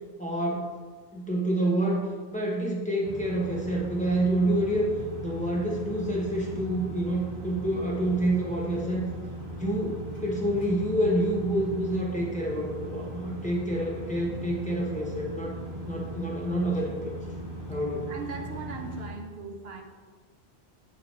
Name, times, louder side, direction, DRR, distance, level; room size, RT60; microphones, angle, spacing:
voice 1, 0.2-0.7 1.1-4.9 5.2-9.1 9.5-15.5 15.9-17.0 17.7-18.1, right 1 dB, 10° left, -3 dB, 0.9 m, -28 dB
sound 1, 3.0-19.1, right 1 dB, 25° right, 1.4 m, -38 dB
voice 2, 18.1-19.8, right 4 dB, 75° right, 2 dB, 1.0 m, -39 dB
7.6 x 2.8 x 4.9 m, 1.5 s
omnidirectional pair, 1.1 m